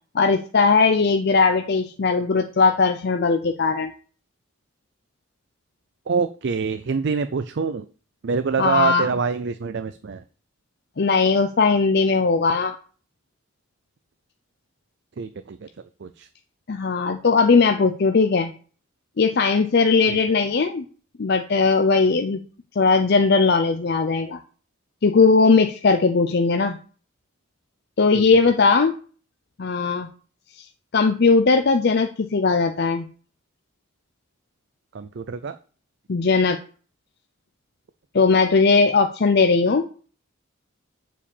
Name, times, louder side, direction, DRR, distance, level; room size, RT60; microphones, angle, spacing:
voice 1, 0.1-3.9 8.6-9.1 11.0-12.8 16.7-18.5 19.2-20.8 21.2-22.4 22.8-24.4 25.0-26.8 28.0-28.9 29.6-30.1 30.5-30.7 30.9-33.1 36.1-36.6 38.1-39.8, left 4 dB, 50° left, 6 dB, 0.5 m, -19 dB
voice 2, 6.1-7.9 8.2-10.2 15.2-15.7 16.0-16.3 20.1-20.2 28.1-28.3 34.9-35.6, right 5 dB, 55° right, 10 dB, 0.4 m, -25 dB
7.0 x 4.9 x 7.0 m, 0.41 s
head